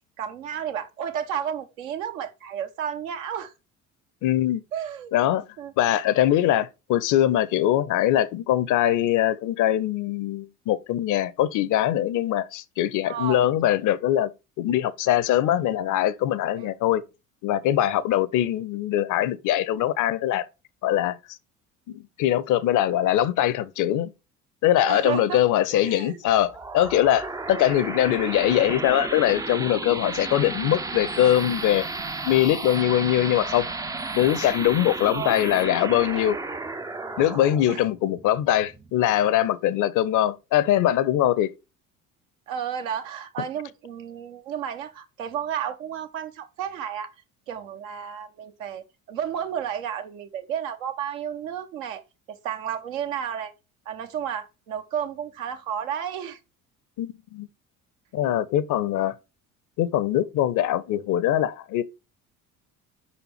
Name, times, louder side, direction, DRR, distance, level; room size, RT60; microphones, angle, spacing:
voice 1, 0.2-3.5 4.7-5.1 5.6-5.7 13.1-13.4 16.6-16.7 24.9-25.4 25.7-26.2 35.1-35.4 37.7-37.8 42.5-47.1 47.5-52.0 52.3-53.5 53.9-56.4 58.2-58.4, right 9 dB, 75° right, 0.9 m, -32 dB
voice 2, 4.2-4.6 5.1-5.4 5.8-14.3 14.6-17.0 17.4-20.5 20.8-21.4 21.9-24.1 24.6-31.9 32.3-33.7 34.1-36.4 37.2-41.5 57.0-57.5 58.1-59.1 59.8-61.8, left 12 dB, 45° left, 0.6 m, -22 dB
sound 1, 26.2-39.4, right 3 dB, 10° right, 0.4 m, -33 dB
5.3 x 4.2 x 4.3 m
figure-of-eight pair, 60°, 41 cm